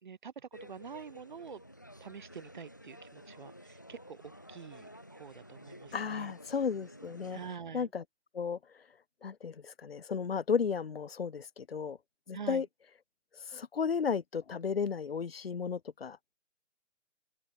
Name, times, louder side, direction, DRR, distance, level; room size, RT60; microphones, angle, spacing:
voice 1, 0.0-1.6 2.0-4.2 4.5-6.3 7.3-7.9 12.3-12.7, right 6 dB, 40° right, 3.5 m, -46 dB
sound 1, 0.5-7.6, equal, 15° left, 0.7 m, -52 dB
voice 2, 5.9-7.4 7.7-8.0 8.3-8.6 9.2-12.0 12.3-12.7 13.5-16.2, left 6 dB, 50° left, 1.2 m, -34 dB
open air
hypercardioid pair, 175°, 38 cm